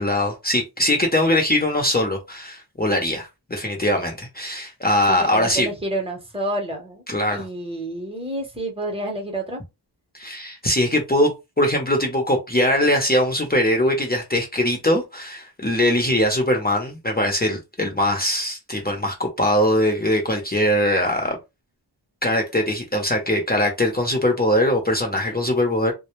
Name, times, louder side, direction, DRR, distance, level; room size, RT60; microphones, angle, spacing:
voice 1, 0.0-5.7 7.1-7.4 10.1-11.3 11.6-21.4 22.2-25.9, left 1 dB, 25° left, 0.7 m, -21 dB
voice 2, 5.1-7.0 7.3-9.6, right 1 dB, 15° right, 0.8 m, -29 dB
2.1 x 2.1 x 3.0 m
wide cardioid pair, 80°, 42 cm